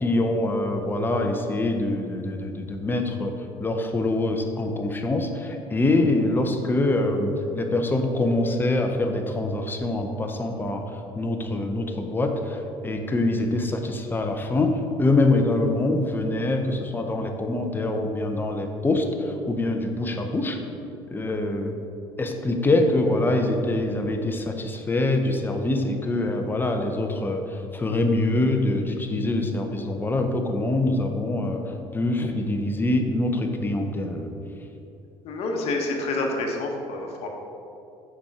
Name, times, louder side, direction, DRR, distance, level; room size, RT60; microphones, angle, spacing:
voice 1, 0.0-3.3 3.6-10.8 11.2-20.6 21.1-21.8 22.2-31.6 31.9-34.3, left 2 dB, 15° left, 4 dB, 0.7 m, -24 dB
voice 2, 35.2-37.3, left 2 dB, 60° left, 1 dB, 1.0 m, -28 dB
5.9 x 4.3 x 4.8 m, 2.7 s
supercardioid pair, 100°, 12 cm